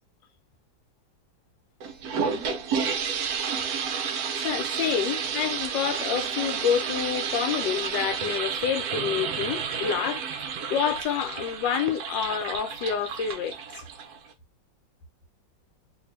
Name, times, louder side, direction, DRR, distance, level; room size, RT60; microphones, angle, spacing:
sound 1, 1.8-14.3, right 6 dB, 65° right, 1.0 m, -31 dB
voice 1, 4.4-13.6, left 8 dB, 75° left, 1.3 m, -28 dB
2.9 x 2.6 x 3.2 m
omnidirectional pair, 2.1 m